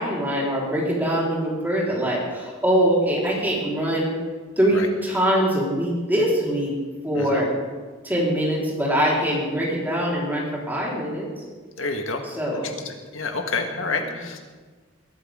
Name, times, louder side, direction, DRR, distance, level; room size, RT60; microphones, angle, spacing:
voice 1, 0.0-4.1 4.6-6.7 7.0-7.5 8.0-11.2 12.3-12.8, equal, 10° right, -5 dB, 4.2 m, -23 dB
voice 2, 11.8-12.2 12.5-14.4, left 3 dB, 85° left, 4 dB, 1.6 m, -29 dB
22.0 x 13.0 x 3.7 m, 1.4 s
head